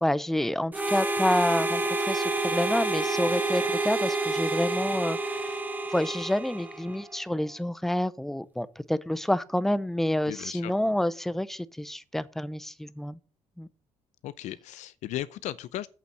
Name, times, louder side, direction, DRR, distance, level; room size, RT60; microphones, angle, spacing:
voice 1, 0.0-5.6 5.9-13.2 13.6-13.7, left 1 dB, 5° left, 0.6 m, -28 dB
Harmonica, 0.7-7.1, right 2 dB, 15° right, 1.2 m, -29 dB
voice 2, 10.3-10.7 14.2-15.9, left 13 dB, 70° left, 0.6 m, -36 dB
8.4 x 7.0 x 6.1 m
cardioid pair, 140°, 12 cm